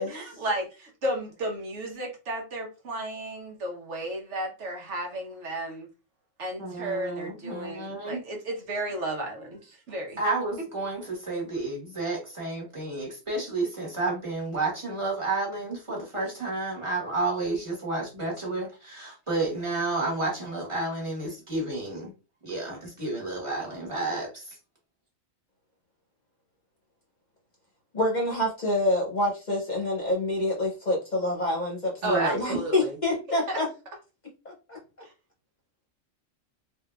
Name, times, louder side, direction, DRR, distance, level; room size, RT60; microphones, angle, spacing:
voice 1, 0.4-5.9 6.4-10.2 32.0-33.0 33.5-33.6, right 1 dB, 65° right, 1.3 m, -33 dB
voice 2, 6.6-8.2 10.2-22.1 22.4-24.5 32.0-32.6, right 2 dB, 25° right, 1.3 m, -31 dB
voice 3, 27.9-33.7 34.4-34.8, left 1 dB, 40° left, 0.8 m, -27 dB
3.5 x 2.7 x 2.3 m
omnidirectional pair, 1.3 m